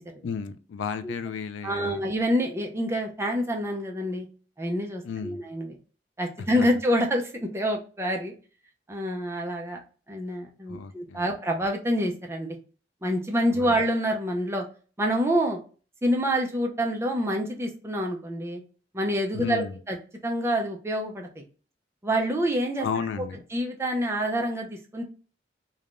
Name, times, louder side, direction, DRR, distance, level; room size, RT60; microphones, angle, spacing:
voice 1, 0.2-2.0 5.0-5.4 6.6-6.7 10.7-11.3 13.5-13.8 19.3-19.8 22.8-23.4, left 6 dB, 85° left, 11 dB, 0.3 m, -33 dB
voice 2, 1.6-4.3 4.6-5.8 6.2-8.3 8.9-9.8 10.1-12.6 13.0-14.6 15.0-15.6 16.0-18.6 18.9-20.0 20.2-21.4 22.0-22.9 23.5-25.0, equal, 15° right, 1 dB, 0.4 m, -27 dB
3.3 x 2.2 x 2.4 m, 0.38 s
head